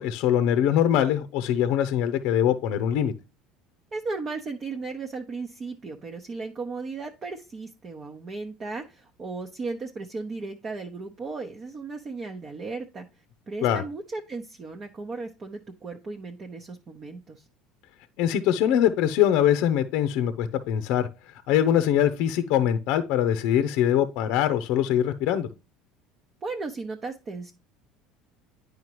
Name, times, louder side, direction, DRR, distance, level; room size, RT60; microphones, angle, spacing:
voice 1, 0.0-3.1 13.6-13.8 18.2-21.1 21.3-25.5, left 10 dB, 70° left, 0.6 m, -23 dB
voice 2, 3.9-13.1 13.5-17.4 26.4-27.5, right 3 dB, 35° right, 0.8 m, -35 dB
9.4 x 5.1 x 3.0 m
supercardioid pair, 110°, 0 cm